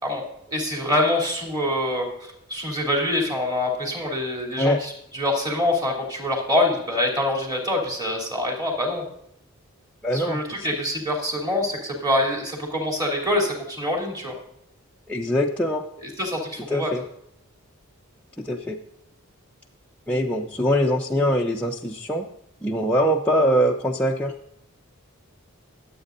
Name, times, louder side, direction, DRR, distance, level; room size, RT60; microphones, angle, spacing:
voice 1, 0.0-2.1 2.5-9.1 10.1-14.3 16.0-16.9, left 1 dB, 20° right, 0 dB, 2.9 m, -25 dB
voice 2, 10.0-10.7 15.1-15.8 16.7-17.0 18.4-18.8 20.1-22.3 22.6-24.3, equal, 5° left, -3 dB, 0.6 m, -23 dB
21.5 x 8.3 x 2.6 m, 0.77 s
head